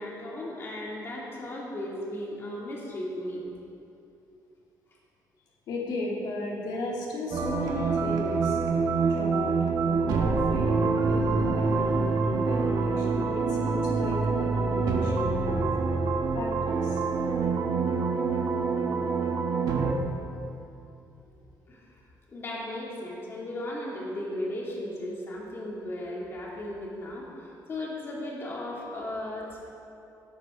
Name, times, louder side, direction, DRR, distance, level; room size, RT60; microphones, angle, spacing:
voice 1, 0.0-3.4 21.7-22.0 22.3-29.6, left 1 dB, 35° left, -4 dB, 2.6 m, -36 dB
voice 2, 5.7-8.6 9.0-9.6 9.8-15.7 16.3-17.0 19.4-19.6, left 2 dB, 75° left, -4 dB, 2.8 m, -35 dB
sound 1, 7.3-19.9, right 4 dB, 70° right, 1.4 m, -26 dB
17.0 x 13.0 x 3.8 m, 2.7 s
cardioid pair, 150°, 7 cm